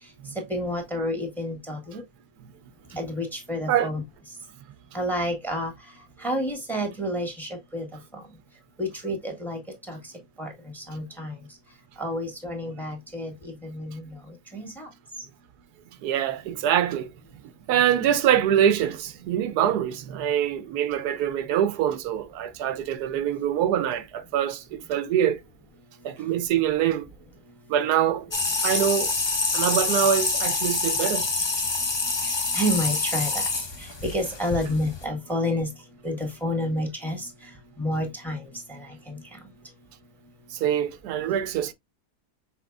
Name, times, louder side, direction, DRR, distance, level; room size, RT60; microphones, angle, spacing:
voice 1, 0.3-2.0 2.9-4.0 4.9-5.7 6.2-7.9 8.8-9.6 9.9-10.0 10.4-11.3 12.0-14.2 14.5-14.9 32.2-33.5 33.8-35.7 36.0-37.3 37.8-38.4 38.7-39.2, left 1 dB, ahead, 1.4 m, -29 dB
voice 2, 16.0-17.1 17.7-25.4 26.0-27.1 27.7-28.3 28.6-29.1 29.5-31.3 40.5-41.7, right 10 dB, 90° right, 1.2 m, -24 dB
sound 1, 28.3-35.1, left 3 dB, 35° left, 0.4 m, -26 dB
5.9 x 3.9 x 2.3 m
omnidirectional pair, 1.6 m